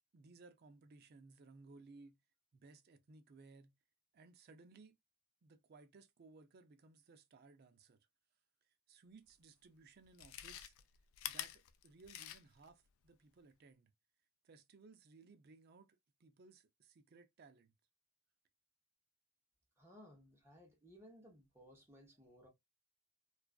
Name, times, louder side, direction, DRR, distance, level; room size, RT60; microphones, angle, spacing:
voice 1, 0.1-2.2 2.5-3.7 4.1-4.9 5.4-8.0 8.7-10.7 11.2-13.9 14.4-17.7, right 3 dB, 45° right, 0.4 m, -61 dB
Chewing mastication, 9.3-9.4 10.0-12.7 13.1-13.2, left 12 dB, 70° left, 0.3 m, -47 dB
voice 2, 19.8-22.5, equal, 10° right, 0.8 m, -60 dB
2.3 x 2.3 x 2.2 m
head